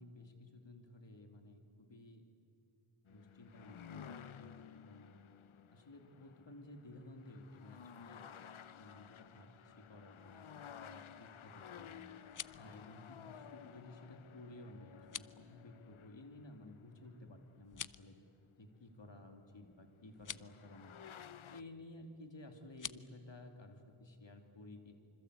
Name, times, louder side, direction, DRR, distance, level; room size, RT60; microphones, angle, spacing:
voice 1, 0.0-2.2 3.1-5.2 5.7-8.2 8.8-12.1 12.5-18.2 18.6-21.0 21.5-24.9, left 2 dB, 65° left, 4 dB, 3.0 m, -55 dB
sound 1, 3.1-18.4 19.8-19.9 20.3-21.6, left 8 dB, 90° left, 0.7 m, -55 dB
sound 2, 12.1-12.7 15.0-15.4 17.6-18.1 20.1-20.5 22.7-23.0, left 7 dB, 40° left, 0.6 m, -46 dB
26.5 x 25.5 x 8.3 m, 2.6 s
wide cardioid pair, 55°, 47 cm